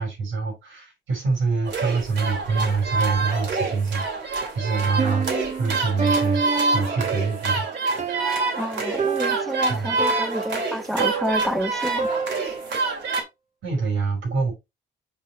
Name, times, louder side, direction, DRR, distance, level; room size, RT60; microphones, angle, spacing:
voice 1, 0.0-5.3 5.6-7.6 9.7-9.9 13.6-14.5, right 4 dB, 85° right, 5.1 m, -25 dB
sound 1, 1.6-13.2, right 3 dB, 65° right, 2.8 m, -27 dB
Piano, 5.0-12.8, right 5 dB, 35° right, 1.5 m, -29 dB
voice 2, 8.6-12.1, equal, ahead, 0.8 m, -29 dB
6.7 x 5.4 x 3.2 m
cardioid pair, 90°, 20 cm